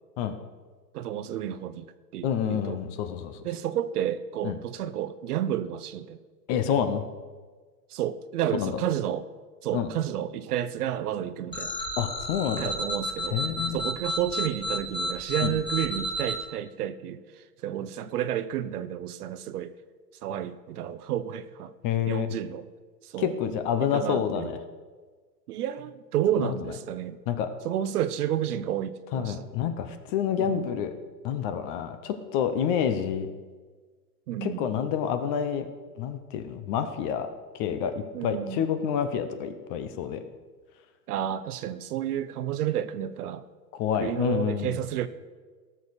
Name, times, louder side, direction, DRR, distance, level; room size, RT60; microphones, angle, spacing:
voice 1, 0.9-1.9 2.1-2.8 3.4-6.2 6.7-6.8 7.9-9.3 9.6-11.8 12.6-13.4 13.7-17.2 17.6-19.7 20.2-21.7 22.1-22.7 23.0-23.3 23.8-24.5 25.5-27.2 27.6-29.4 30.4-30.7 34.3-34.6 38.1-38.6 41.1-43.4 44.0-45.1, right 10 dB, 65° right, 13 dB, 0.9 m, -31 dB
voice 2, 2.2-3.4 4.4-4.6 6.5-7.0 8.5-8.7 9.7-9.9 12.0-12.7 13.3-13.8 15.4-15.5 21.8-22.3 23.2-24.6 26.4-26.5 27.3-27.5 29.1-30.9 31.2-33.3 34.4-35.7 36.0-37.3 37.5-40.2 43.7-44.8, left 8 dB, 30° left, 10 dB, 0.8 m, -28 dB
sound 1, 11.5-16.4, left 1 dB, 10° left, 1.3 m, -31 dB
18.0 x 6.7 x 4.1 m, 1.4 s
hypercardioid pair, 140°, 50 cm